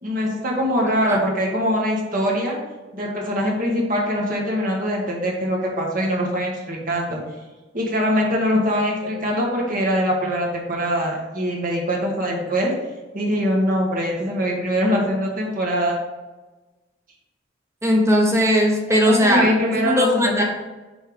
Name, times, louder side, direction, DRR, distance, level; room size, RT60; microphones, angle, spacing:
voice 1, 0.0-2.6 2.9-7.2 7.7-12.7 13.1-16.0 18.9-20.4, equal, 50° right, -2 dB, 1.6 m, -23 dB
voice 2, 17.8-20.4, equal, 15° right, 0 dB, 1.1 m, -18 dB
6.3 x 4.7 x 5.1 m, 1.2 s
head